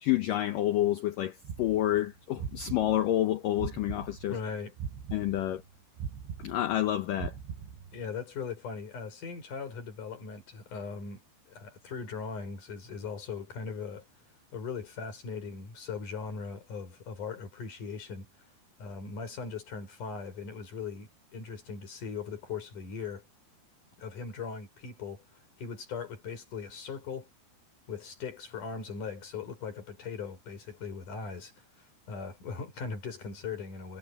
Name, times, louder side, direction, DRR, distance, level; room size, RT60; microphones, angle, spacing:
voice 1, 0.0-4.4 5.1-5.6 6.4-7.3, left 13 dB, 80° left, 1.9 m, -28 dB
sound 1, 1.5-4.4 4.8-8.1, right 7 dB, 85° right, 6.1 m, -40 dB
voice 2, 4.3-4.7 7.9-11.2 11.5-14.0 14.5-18.3 18.8-23.2 24.0-25.2 25.6-27.3 27.9-31.5 31.8-34.0, left 5 dB, 45° left, 6.5 m, -39 dB
omnidirectional pair, 5.2 m